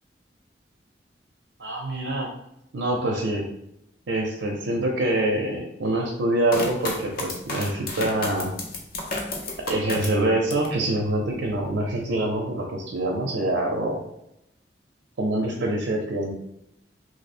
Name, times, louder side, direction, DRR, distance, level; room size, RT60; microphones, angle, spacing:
voice 1, 1.6-2.3 2.7-3.4 4.1-8.5 9.7-14.0 15.2-16.3, right 1 dB, 90° right, -1 dB, 0.6 m, -25 dB
sound 1, 6.5-10.8 11.2-11.9, left 2 dB, 55° left, 0.6 m, -32 dB
3.0 x 2.1 x 4.1 m, 0.81 s
head